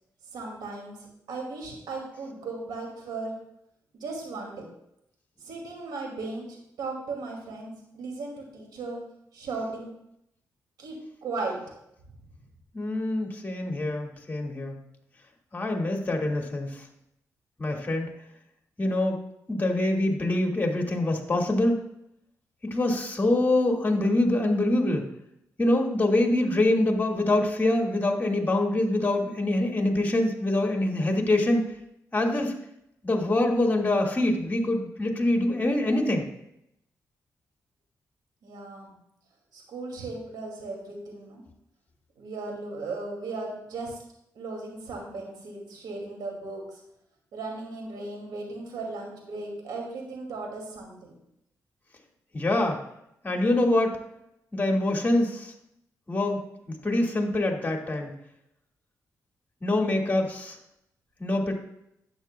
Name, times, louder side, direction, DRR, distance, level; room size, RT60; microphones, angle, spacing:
voice 1, 0.3-3.3 3.9-4.6 5.4-9.0 9.3-9.9 10.8-10.9 11.2-11.6 38.4-38.9 39.5-41.4 42.2-44.0 44.4-46.8 47.3-51.2, right 3 dB, 85° right, 0 dB, 2.2 m, -36 dB
voice 2, 12.7-14.8 15.5-16.9 17.6-18.1 18.8-19.2 19.5-21.8 22.6-25.1 25.6-31.7 32.1-32.5 33.0-36.3 52.3-52.8 53.2-54.0 54.5-55.5 56.1-56.4 56.7-58.1 59.6-60.6 61.2-61.5, left 1 dB, 25° left, 2 dB, 1.8 m, -25 dB
11.5 x 7.7 x 2.2 m, 0.80 s
cardioid pair, 65°, 7 cm